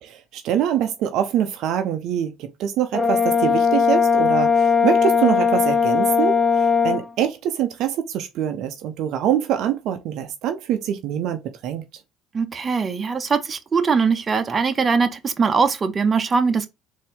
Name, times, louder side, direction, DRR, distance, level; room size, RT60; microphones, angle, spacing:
voice 1, 0.0-12.0, right 10 dB, 65° right, 0.6 m, -24 dB
Brass instrument, 2.9-7.0, left 5 dB, 15° left, 0.6 m, -18 dB
voice 2, 12.3-16.7, right 5 dB, 35° right, 0.8 m, -21 dB
4.1 x 2.7 x 3.6 m
hypercardioid pair, 75°, 0 cm